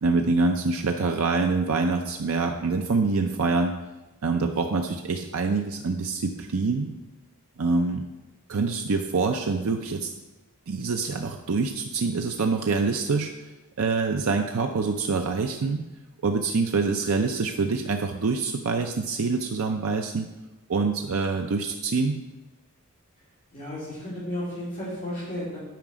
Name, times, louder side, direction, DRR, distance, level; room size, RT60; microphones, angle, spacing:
voice 1, 0.0-3.7 4.2-6.9 7.6-8.0 8.5-10.1 10.7-13.3 13.8-15.8 16.2-20.3 20.7-22.2, right 4 dB, 75° right, 4 dB, 0.6 m, -25 dB
voice 2, 23.5-25.6, left 1 dB, 35° left, -11 dB, 3.0 m, -33 dB
9.2 x 5.0 x 6.2 m, 1.0 s
head